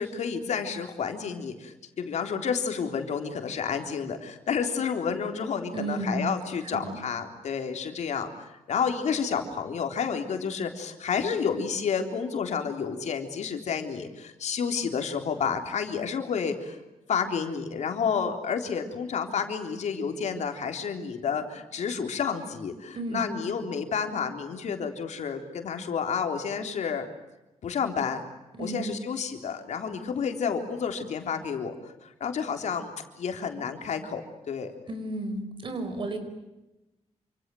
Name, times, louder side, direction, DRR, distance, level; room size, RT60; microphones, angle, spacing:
voice 1, 0.0-16.8 17.1-27.1 27.6-28.2 28.6-34.2 34.5-34.7, left 6 dB, 75° left, 5 dB, 3.7 m, -30 dB
voice 2, 5.7-6.4 6.7-7.0 22.9-23.3 28.5-29.0 34.9-36.2, right 2 dB, 45° right, 8 dB, 5.3 m, -32 dB
28.5 x 27.0 x 7.8 m, 0.99 s
wide cardioid pair, 180°, 12 cm